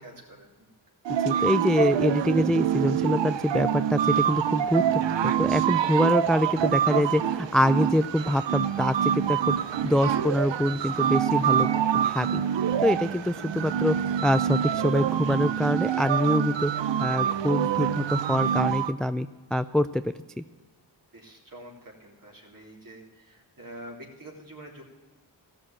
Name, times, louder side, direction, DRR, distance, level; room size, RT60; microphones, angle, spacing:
voice 1, 0.0-0.5 21.1-24.8, right 1 dB, 50° right, -2 dB, 3.5 m, -46 dB
sound 1, 1.1-18.9, right 9 dB, 80° right, 0.6 m, -26 dB
voice 2, 1.2-9.6 9.8-12.4 12.8-16.7 17.0-20.4, left 1 dB, ahead, 12 dB, 0.3 m, -25 dB
15.0 x 6.5 x 7.3 m, 1.4 s
cardioid pair, 55°, 43 cm